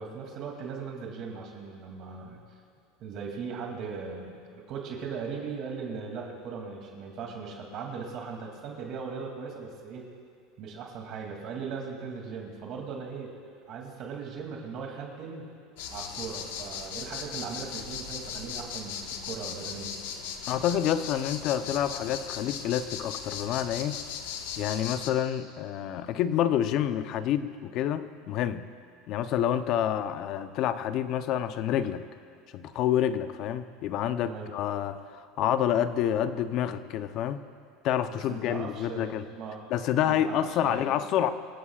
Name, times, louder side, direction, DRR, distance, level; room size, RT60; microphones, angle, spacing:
voice 1, 0.0-2.4 3.0-10.1 10.6-13.3 13.7-15.5 15.9-20.0 34.3-34.5 38.1-39.7 40.0-40.8, right 5 dB, 45° right, 0 dB, 2.6 m, -38 dB
sound 1, 15.8-25.1, left 7 dB, 85° left, 1.4 m, -38 dB
voice 2, 20.5-24.0 24.6-28.7 29.1-32.0 32.5-35.0 35.4-37.4 37.8-39.2 39.7-41.3, left 10 dB, 45° left, 11 dB, 0.7 m, -28 dB
26.5 x 17.0 x 2.4 m, 2.2 s
supercardioid pair, 150°, 0 cm